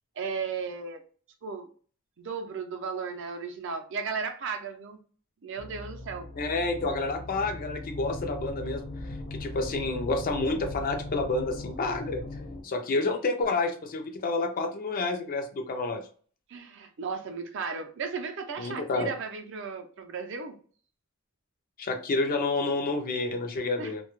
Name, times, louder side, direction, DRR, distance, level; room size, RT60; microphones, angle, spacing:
voice 1, 0.2-1.0 1.4-1.7 2.2-5.0 5.4-6.3 16.5-20.6 23.8-23.9, right 5 dB, 60° right, 6 dB, 0.5 m, -35 dB
sound 1, 5.6-12.6, left 2 dB, 70° left, 0.9 m, -39 dB
voice 2, 6.4-8.8 9.3-12.2 12.6-16.0 18.6-19.1 21.8-24.0, left 3 dB, 40° left, 6 dB, 0.4 m, -29 dB
2.2 x 2.0 x 2.9 m, 0.42 s
head